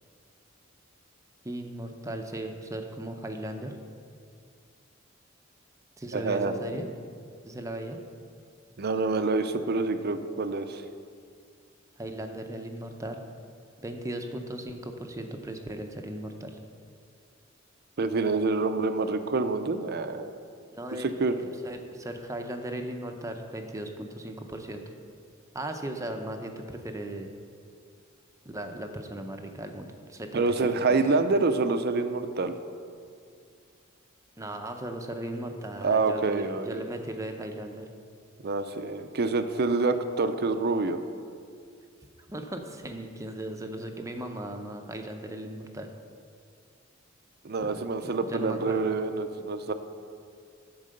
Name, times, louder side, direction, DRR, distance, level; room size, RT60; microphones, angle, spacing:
voice 1, 1.4-3.7 6.0-6.9 7.4-8.0 12.0-13.2 13.8-16.6 20.7-21.1 21.4-24.8 25.5-27.3 28.4-30.6 34.4-37.8 42.3-45.9 47.6-48.9, right 1 dB, 15° right, 4 dB, 0.6 m, -37 dB
voice 2, 6.1-6.5 8.8-10.8 18.0-20.3 21.2-21.3 30.3-32.5 35.8-36.8 38.4-41.0 47.4-49.7, right 3 dB, 50° right, 9 dB, 0.5 m, -27 dB
11.0 x 4.7 x 6.5 m, 2.2 s
head